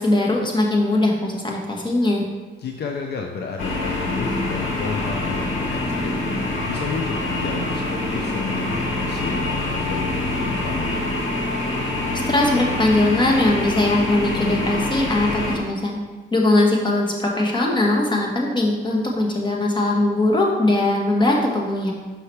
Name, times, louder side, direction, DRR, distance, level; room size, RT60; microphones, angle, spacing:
voice 1, 0.0-2.2 12.3-16.0 16.3-21.9, left 2 dB, 25° left, -1 dB, 1.2 m, -20 dB
voice 2, 2.6-6.2 6.7-10.8, left 5 dB, 55° left, 3 dB, 0.5 m, -32 dB
sound 1, 3.6-15.6, left 2 dB, 75° left, 1.5 m, -25 dB
5.7 x 5.6 x 3.2 m, 1.3 s
cardioid pair, 90°, 20 cm